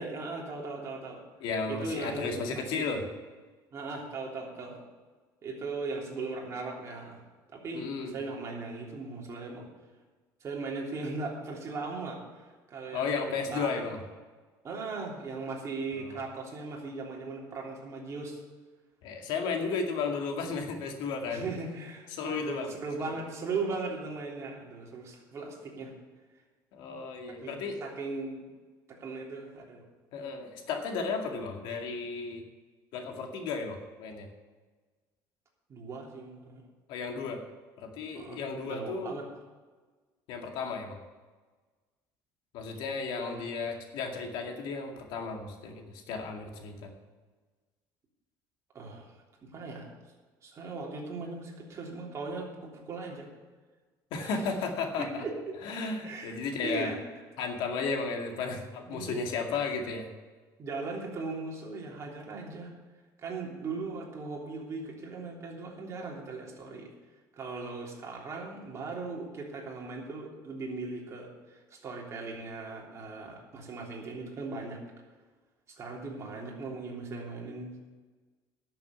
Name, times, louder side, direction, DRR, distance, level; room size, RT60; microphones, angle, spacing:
voice 1, 0.0-1.2 1.7-2.8 3.7-4.8 5.4-7.2 7.5-9.7 10.4-13.8 14.6-18.4 21.3-25.9 27.4-28.5 29.0-29.8 35.7-36.6 38.1-39.2 43.2-43.4 48.7-49.1 49.5-49.9 50.4-53.3 54.2-54.4 55.0-55.6 56.0-56.3 56.6-57.0 58.8-59.2 60.6-62.7 63.2-66.9 67.3-74.8 75.7-77.7, right 3 dB, 35° right, -1 dB, 3.3 m, -38 dB
voice 2, 1.4-3.0 7.7-8.2 12.9-14.0 15.9-16.2 19.0-21.5 22.1-22.7 23.0-23.1 26.7-27.8 30.1-32.4 32.9-34.3 36.9-37.4 37.8-39.2 40.3-41.0 42.5-46.9 54.1-55.2 55.6-56.9 57.4-60.1, left 4 dB, 70° left, 3 dB, 2.2 m, -34 dB
11.5 x 7.0 x 8.2 m, 1.4 s
cardioid pair, 120°, 8 cm